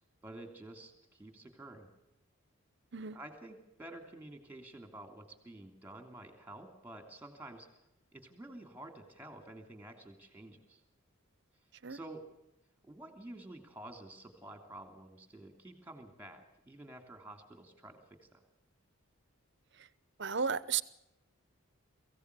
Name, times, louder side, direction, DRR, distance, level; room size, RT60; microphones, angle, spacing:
voice 1, 0.2-1.9 3.1-7.7 8.1-10.8 11.9-12.2 12.8-18.4, right 1 dB, 10° right, 3.0 m, -50 dB
voice 2, 20.2-20.8, right 6 dB, 55° right, 0.9 m, -33 dB
23.0 x 16.0 x 8.3 m
head